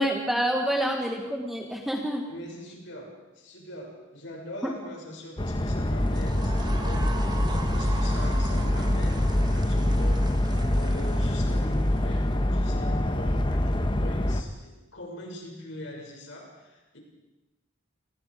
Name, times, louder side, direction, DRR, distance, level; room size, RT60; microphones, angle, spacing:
voice 1, 0.0-2.3 4.6-4.7, equal, ahead, 1 dB, 1.4 m, -27 dB
voice 2, 2.3-7.1 7.5-10.3 10.7-17.0, left 1 dB, 60° left, 0 dB, 6.6 m, -42 dB
sound 1, 5.4-14.4, left 1 dB, 25° left, 1.1 m, -25 dB
sound 2, 6.0-12.3, right 3 dB, 20° right, 1.4 m, -41 dB
28.5 x 21.0 x 5.1 m, 1.1 s
head